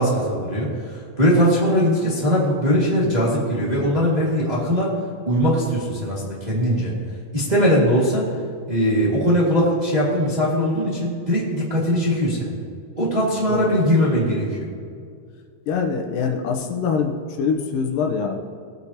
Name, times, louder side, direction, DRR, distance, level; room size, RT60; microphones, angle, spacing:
voice 1, 0.0-4.9 5.2-6.9 7.3-8.3 8.7-12.6 12.9-14.7, equal, 20° right, -6 dB, 1.4 m, -20 dB
voice 2, 15.7-18.4, left 5 dB, 80° left, 3 dB, 2.5 m, -24 dB
19.5 x 8.2 x 2.9 m, 2.3 s
omnidirectional pair, 4.0 m